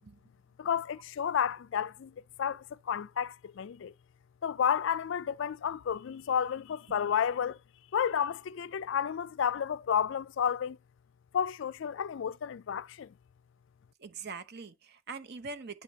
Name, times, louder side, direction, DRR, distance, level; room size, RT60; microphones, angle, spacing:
voice 1, 0.6-3.9 4.4-7.6 7.9-10.8 11.3-13.1, left 8 dB, 55° left, 0.3 m, -31 dB
voice 2, 14.0-15.8, right 4 dB, 50° right, 0.7 m, -43 dB
8.9 x 5.1 x 2.7 m
head